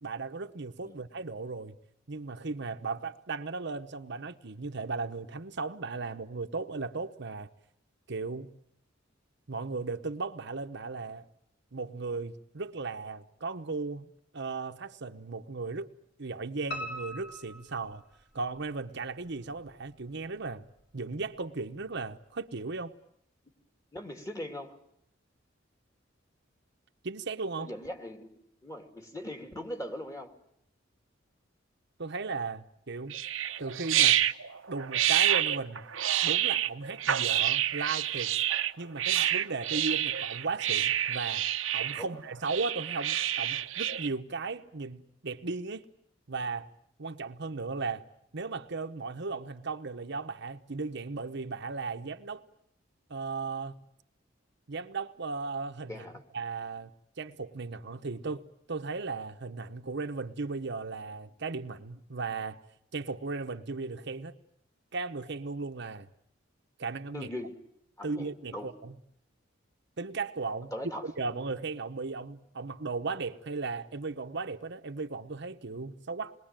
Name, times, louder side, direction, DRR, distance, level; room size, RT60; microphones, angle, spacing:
voice 1, 0.0-1.7 2.1-7.5 8.1-8.5 9.5-11.2 11.7-14.1 14.3-15.9 16.2-18.0 18.3-20.6 20.9-22.9 27.0-27.7 32.0-33.2 33.6-34.2 34.7-35.9 36.2-38.3 38.8-41.4 41.7-45.9 46.3-46.7 47.0-48.0 48.3-52.4 53.1-53.8 54.7-56.1 56.3-56.9 57.2-62.6 62.9-64.3 64.9-66.1 66.8-67.3 68.0-69.0 70.0-70.7 71.0-76.3, right 4 dB, 60° right, 1.0 m, -36 dB
Piano, 16.7-18.6 19.0-19.9 20.2-20.3 20.8-20.9 21.1-21.2, equal, 60° left, 3.4 m, -41 dB
voice 2, 23.9-24.8 27.6-30.3 42.0-42.2 55.9-56.2 67.1-67.6 68.0-68.7 70.7-71.3, left 1 dB, 15° left, 2.5 m, -40 dB
sound 1, 33.1-44.1, right 11 dB, 90° right, 1.0 m, -28 dB
27.5 x 21.5 x 8.9 m
head